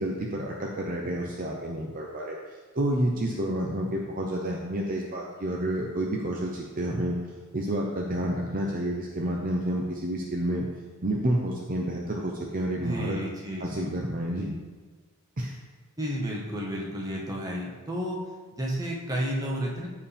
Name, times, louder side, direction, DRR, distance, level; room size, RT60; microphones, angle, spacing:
voice 1, 0.0-7.2 7.5-10.7 11.0-13.2 13.6-14.5 15.4-15.6, right 1 dB, 40° right, -1 dB, 0.8 m, -29 dB
voice 2, 12.8-13.8 16.0-18.2 18.5-19.9, equal, 15° right, -3 dB, 1.4 m, -31 dB
14.5 x 4.9 x 3.5 m, 1.4 s
head